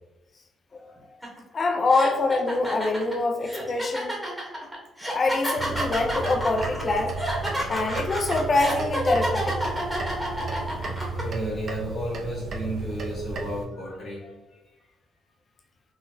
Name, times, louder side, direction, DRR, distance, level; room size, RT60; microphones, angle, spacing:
sound 1, 1.2-1.4 1.9-11.2, equal, 5° right, 0.9 m, -30 dB
voice 1, 1.5-4.1 5.1-7.1 7.7-9.7, left 3 dB, 45° left, 3 dB, 0.4 m, -25 dB
sound 2, 5.6-13.7, right 4 dB, 50° right, 0.5 m, -34 dB
voice 2, 10.1-14.8, equal, 60° left, -6 dB, 1.0 m, -34 dB
3.8 x 2.0 x 2.6 m, 1.1 s
cardioid pair, 90°, 0 cm